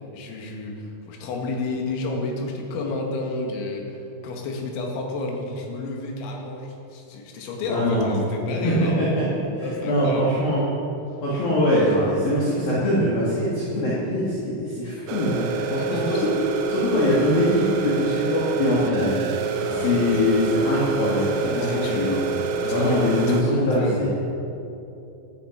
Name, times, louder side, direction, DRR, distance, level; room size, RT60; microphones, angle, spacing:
voice 1, 0.1-4.0 4.2-9.0 9.6-10.3 15.8-16.3 19.7-20.3 21.4-22.3 22.6-23.0 23.3-24.0, left 2 dB, 70° left, 0 dB, 4.3 m, -30 dB
voice 2, 7.7-8.1 8.5-8.7 9.0-9.3 9.6-10.7 11.2-16.2 16.7-19.2 19.8-22.2 22.7-24.1, left 1 dB, 55° left, -7 dB, 3.9 m, -23 dB
sound 1, 15.1-23.4, right 4 dB, 75° right, 3.3 m, -27 dB
17.5 x 13.5 x 6.0 m, 2.8 s
omnidirectional pair, 5.6 m